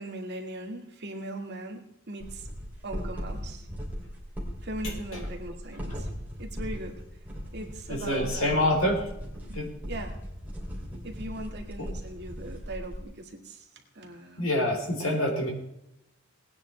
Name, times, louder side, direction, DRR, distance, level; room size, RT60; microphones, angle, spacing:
voice 1, 0.0-2.5 2.8-3.7 4.6-6.1 6.4-7.0 7.5-8.8 9.5-9.6 9.9-10.2 11.0-13.7 13.9-14.5, right 1 dB, 50° right, 2 dB, 2.0 m, -39 dB
sound 1, 2.2-13.0, equal, 10° right, 3.0 m, -38 dB
voice 2, 7.9-9.0 9.5-9.7 14.4-15.5, left 1 dB, 70° left, 1 dB, 3.5 m, -26 dB
19.5 x 9.8 x 3.3 m, 0.85 s
head